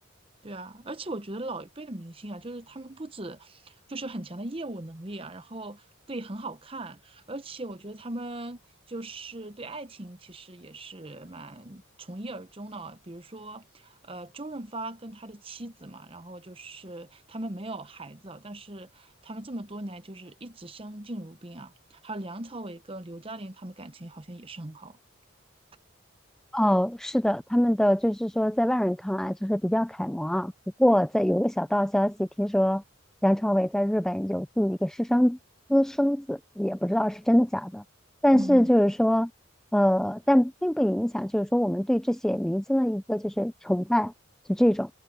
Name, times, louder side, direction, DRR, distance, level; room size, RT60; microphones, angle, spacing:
voice 1, 0.4-8.6 8.9-25.0 38.3-38.7, right 2 dB, 25° right, 0.9 m, -39 dB
voice 2, 26.5-30.5 30.8-32.8 33.2-35.4 35.7-37.8 38.2-39.3 39.7-44.1 44.5-44.9, equal, 5° left, 0.3 m, -24 dB
head